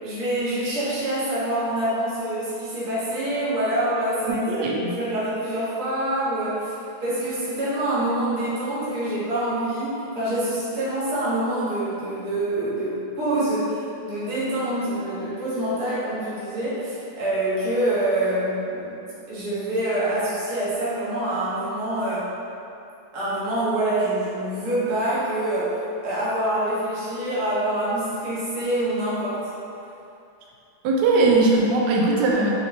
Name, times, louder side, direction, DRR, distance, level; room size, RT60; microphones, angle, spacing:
voice 1, 0.0-6.7 7.0-18.9 19.3-22.3 23.1-25.7 26.0-29.4, right 1 dB, 55° right, -11 dB, 1.5 m, -26 dB
voice 2, 4.3-4.9 30.8-32.5, right 2 dB, 70° right, -2 dB, 1.0 m, -20 dB
5.1 x 2.9 x 2.6 m, 2.7 s
omnidirectional pair, 2.2 m